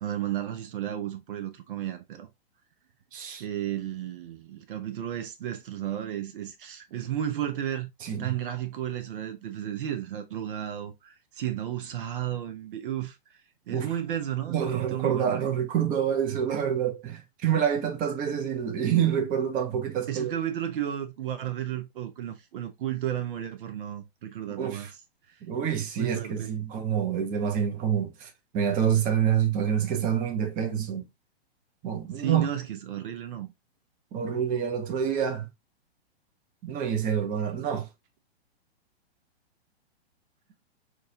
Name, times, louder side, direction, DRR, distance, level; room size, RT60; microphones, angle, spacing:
voice 1, 0.0-2.3 3.4-7.9 8.2-13.4 13.7-15.4 20.1-24.9 25.3-25.4 26.0-26.5 32.1-33.5, right 11 dB, 55° right, 0.9 m, -33 dB
voice 2, 3.1-3.4 8.0-8.4 13.7-13.9 14.5-20.4 24.6-24.9 25.4-31.0 31.8-32.5 34.1-35.5 36.6-37.9, right 8 dB, 25° right, 0.9 m, -27 dB
6.3 x 2.5 x 2.7 m
hypercardioid pair, 115°, 32 cm